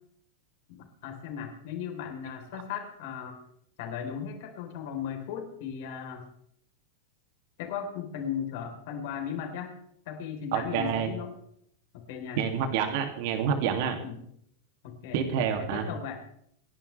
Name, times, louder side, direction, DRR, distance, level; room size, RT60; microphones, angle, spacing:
voice 1, 0.7-3.4 3.8-6.3 7.6-9.7 10.1-11.3 11.9-12.4 14.0-14.2 14.8-15.2 15.6-16.2, left 8 dB, 60° left, 3 dB, 4.1 m, -37 dB
voice 2, 10.5-11.1 12.4-14.0 15.1-15.9, right 7 dB, 55° right, 5 dB, 2.7 m, -28 dB
27.5 x 11.5 x 3.5 m, 0.70 s
hypercardioid pair, 95°, 0 cm